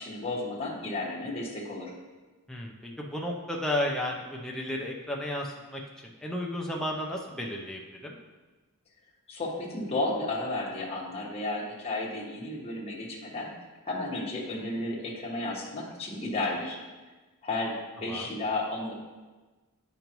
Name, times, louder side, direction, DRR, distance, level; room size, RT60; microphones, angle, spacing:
voice 1, 0.0-1.9 9.3-13.5 13.8-16.8 17.4-18.9, left 2 dB, 30° left, -4 dB, 1.3 m, -33 dB
voice 2, 2.5-8.2 18.1-18.3, left 1 dB, ahead, -1 dB, 0.6 m, -33 dB
9.1 x 5.3 x 3.0 m, 1.3 s
head